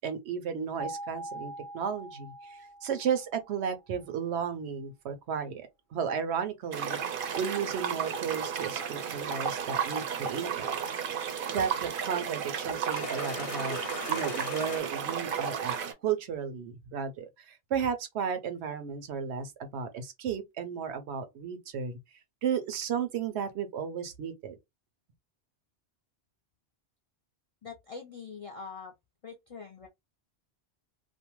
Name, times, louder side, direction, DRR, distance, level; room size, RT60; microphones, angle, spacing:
voice 1, 0.0-10.7 11.5-13.8 14.1-15.8 16.0-21.9 22.4-24.6, right 7 dB, 85° right, 0.9 m, -34 dB
sound 1, 0.8-3.8, right 1 dB, 30° right, 0.4 m, -42 dB
sound 2, 6.6-6.7 7.2-10.5 11.2-11.9 12.3-14.8, left 8 dB, 70° left, 0.7 m, -45 dB
sound 3, 6.7-15.9, right 7 dB, 60° right, 0.7 m, -33 dB
voice 2, 27.6-28.9 29.2-29.9, left 5 dB, 45° left, 0.4 m, -43 dB
2.6 x 2.0 x 2.8 m
omnidirectional pair, 1.1 m